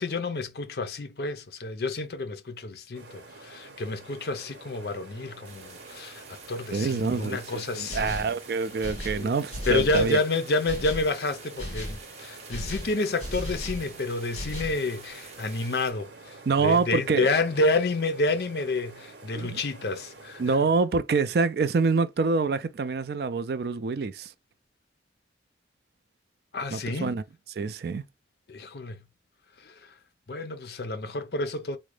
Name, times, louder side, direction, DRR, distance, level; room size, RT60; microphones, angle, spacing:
voice 1, 0.0-6.2 6.5-8.2 9.2-9.3 9.7-16.1 16.6-20.4 26.5-27.2 28.5-29.0 29.6-29.9 30.3-31.8, left 3 dB, 60° left, 0.5 m, -29 dB
sound 1, 2.9-20.6, right 3 dB, 80° right, 1.1 m, -48 dB
sound 2, 5.4-15.9, right 5 dB, 35° right, 1.0 m, -48 dB
voice 2, 6.7-10.2 16.5-17.3 19.3-19.6 20.4-24.3 26.7-27.2 27.6-28.0, right 4 dB, 60° right, 0.4 m, -26 dB
sound 3, 7.9-8.4 8.8-10.2 10.7-11.1 11.6-12.0 12.5-13.9 14.3-14.8, equal, 35° left, 1.6 m, -35 dB
3.7 x 2.1 x 3.2 m
head